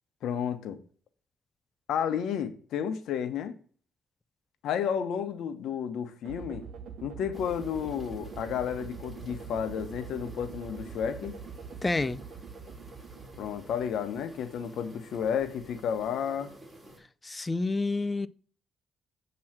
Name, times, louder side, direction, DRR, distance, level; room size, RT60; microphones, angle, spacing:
voice 1, 0.2-0.8 1.9-3.5 4.6-6.6 7.0-11.3 13.4-16.5, left 8 dB, 80° left, 1.0 m, -32 dB
sound 1, 6.2-14.4, right 6 dB, 70° right, 0.7 m, -44 dB
sound 2, 7.3-17.0, right 1 dB, 15° right, 2.3 m, -51 dB
voice 2, 11.8-12.2 17.2-18.3, left 3 dB, 20° left, 0.4 m, -28 dB
7.7 x 3.1 x 5.9 m
cardioid pair, 90°, 0 cm